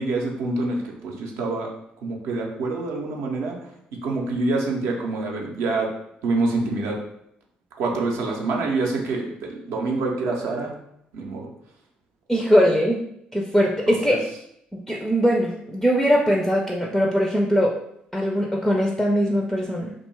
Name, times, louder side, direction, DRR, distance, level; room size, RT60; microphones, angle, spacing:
voice 1, 0.0-1.7 2.0-3.6 4.0-5.9 6.2-7.0 7.8-10.7 11.1-11.5 13.9-14.2, right 3 dB, 60° right, 0 dB, 0.6 m, -26 dB
voice 2, 12.3-13.0 13.3-14.2 14.7-17.7 18.1-19.9, equal, 5° left, -1 dB, 0.4 m, -21 dB
2.6 x 2.2 x 3.1 m, 0.75 s
figure-of-eight pair, 45°, 5 cm